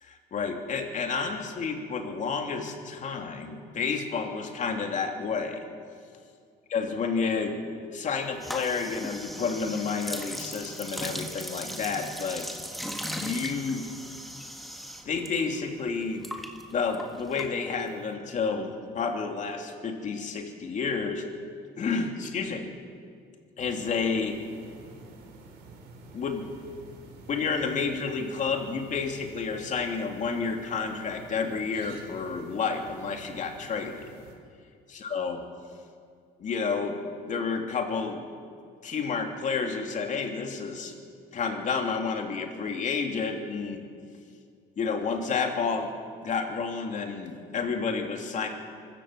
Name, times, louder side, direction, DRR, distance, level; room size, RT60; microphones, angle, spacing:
voice 1, 0.0-5.6 6.7-7.6 7.9-12.5 13.1-13.9 15.1-16.3 16.7-21.2 21.8-22.7 23.6-24.4 26.1-26.5 27.3-34.0 34.9-35.4 36.4-38.2 38.8-40.9 41.3-43.8 44.8-45.9 46.2-48.5, left 5 dB, 45° left, 3 dB, 2.8 m, -30 dB
sound 1, 8.4-15.3 15.6-18.0, equal, ahead, 1.9 m, -38 dB
sound 2, 23.6-34.3, right 2 dB, 85° right, 3.8 m, -49 dB
24.5 x 14.0 x 7.5 m, 2.2 s
cardioid pair, 110°, 17 cm